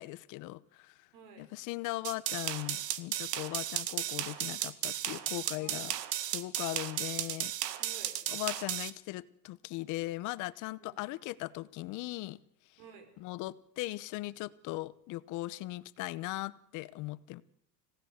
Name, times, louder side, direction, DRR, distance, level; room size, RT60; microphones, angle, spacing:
voice 1, 0.0-1.1 1.4-5.9 6.2-7.5 8.3-12.4 13.2-17.4, left 19 dB, 40° left, 18 dB, 0.9 m, -39 dB
voice 2, 1.1-1.5 5.6-6.1 7.8-8.2 10.8-11.2 12.8-13.1, right 6 dB, 65° right, 8 dB, 5.9 m, -53 dB
sound 1, 2.0-8.9, right 12 dB, 85° right, 1.9 m, -35 dB
26.0 x 17.0 x 8.0 m, 0.71 s
supercardioid pair, 145°, 47 cm